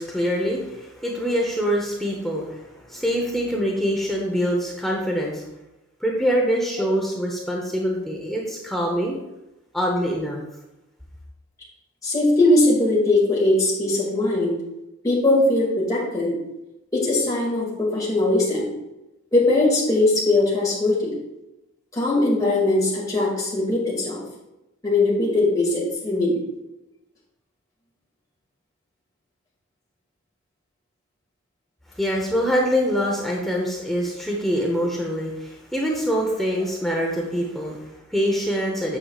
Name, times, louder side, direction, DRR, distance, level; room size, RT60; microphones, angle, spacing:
voice 1, 0.0-5.4 6.0-9.2 9.7-10.4 31.9-39.0, equal, ahead, -2 dB, 0.9 m, -24 dB
voice 2, 12.0-14.6 15.0-16.4 16.9-18.7 19.3-21.1 21.9-24.2 24.8-26.4, left 2 dB, 15° left, -5 dB, 2.2 m, -20 dB
8.9 x 6.9 x 2.4 m, 0.95 s
head